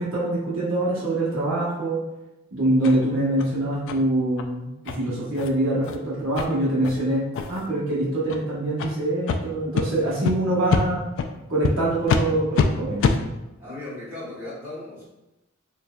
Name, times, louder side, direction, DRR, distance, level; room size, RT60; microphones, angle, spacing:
voice 1, 0.0-2.0 2.5-11.0 11.5-13.1, right 1 dB, 65° right, -7 dB, 1.1 m, -24 dB
sound 1, 2.8-3.0 3.4-3.5 3.9-4.0 4.4-4.5 4.9-5.0 5.3-5.5 5.8-6.0 6.4-6.5 6.8-7.0 7.3-7.7 8.2-8.4 8.8-8.9 9.3-9.4 9.7-9.9 10.2-10.3 10.7-10.8 11.2-11.3 11.6-11.7 12.1-12.2 12.5-12.7 13.0-13.2, left 5 dB, 60° left, 0.3 m, -23 dB
voice 2, 13.6-15.0, left 2 dB, 10° right, -9 dB, 1.3 m, -37 dB
4.3 x 2.6 x 2.2 m, 0.98 s
head